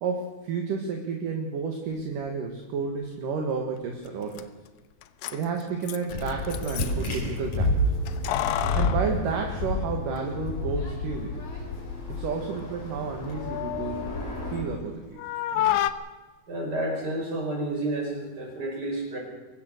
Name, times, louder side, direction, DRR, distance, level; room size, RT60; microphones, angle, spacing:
voice 1, 0.0-4.5 5.3-8.1 8.7-11.5 12.1-14.1 14.5-15.0 15.5-15.7, right 5 dB, 60° right, 2 dB, 3.1 m, -31 dB
Keys jangling, 4.1-4.2 4.3-4.4 5.0-7.1 8.1-10.2 10.5-10.6 11.5-12.0 12.4-14.9 15.2-15.9, left 12 dB, 85° left, 2.9 m, -31 dB
sound 1, 6.1-14.6, left 1 dB, 45° left, 6.2 m, -30 dB
voice 2, 16.5-19.2, right 1 dB, 25° right, 1 dB, 5.6 m, -30 dB
23.5 x 19.0 x 6.7 m, 1.2 s
omnidirectional pair, 4.6 m